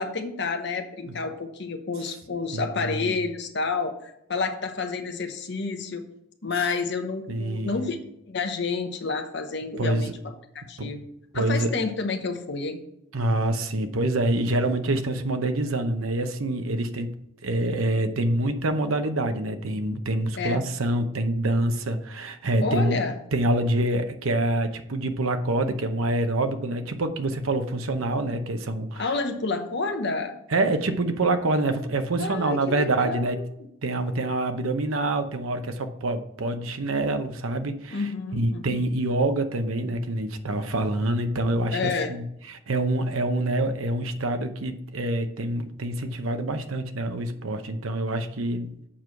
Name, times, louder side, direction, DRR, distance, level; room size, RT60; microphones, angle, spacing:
voice 1, 0.0-6.0 6.4-8.0 8.3-10.1 10.7-11.0 11.3-12.8 20.4-20.6 22.6-23.1 29.0-30.3 32.2-33.3 33.6-33.7 37.9-38.8 41.7-42.1, left 4 dB, 55° left, 6 dB, 0.9 m, -29 dB
voice 2, 2.5-3.2 7.3-7.7 9.8-10.1 10.8-10.9 11.3-11.7 13.1-17.1 17.4-23.0 23.3-29.2 30.5-33.4 33.8-48.7, right 2 dB, 80° right, 7 dB, 0.8 m, -26 dB
7.4 x 4.7 x 5.8 m, 0.79 s
head